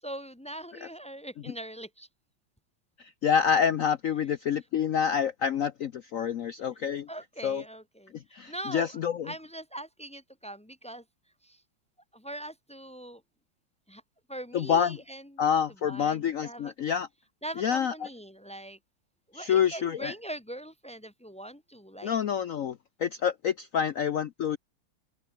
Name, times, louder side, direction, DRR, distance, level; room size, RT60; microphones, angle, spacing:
voice 1, 0.0-2.1 7.1-8.1 8.5-8.9 9.2-11.0 11.4-11.6 12.1-13.2 13.9-14.0 14.3-15.3 15.8-16.7 17.4-18.8 19.3-22.1, right 1 dB, 10° left, 0.3 m, -41 dB
voice 2, 3.0-7.1 7.4-7.6 8.1-9.3 14.5-15.0 15.4-17.1 17.6-18.1 19.3-20.1 22.0-24.6, left 7 dB, 75° left, 0.7 m, -27 dB
open air
omnidirectional pair, 2.2 m